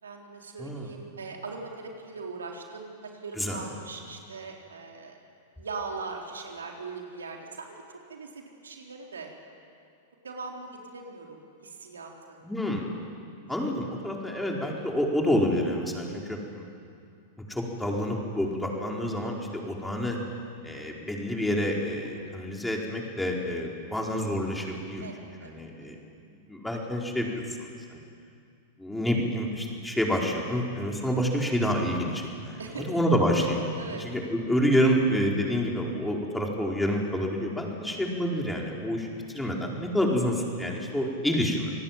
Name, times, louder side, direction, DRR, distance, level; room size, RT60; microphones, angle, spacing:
voice 1, 0.0-5.2 5.6-7.8 8.1-9.3 10.2-12.4 13.5-13.7 22.0-22.3 25.0-25.9 32.6-32.9 33.3-34.1, right 4 dB, 80° right, 1 dB, 3.9 m, -40 dB
voice 2, 12.4-12.9 13.5-16.4 17.5-20.2 20.6-25.1 25.4-25.9 26.5-27.4 27.9-28.0 28.8-32.6 32.9-33.6 34.0-39.1 39.3-41.7, equal, 5° left, -1 dB, 4.7 m, -28 dB
28.0 x 19.0 x 9.2 m, 2.4 s
hypercardioid pair, 100°, 0 cm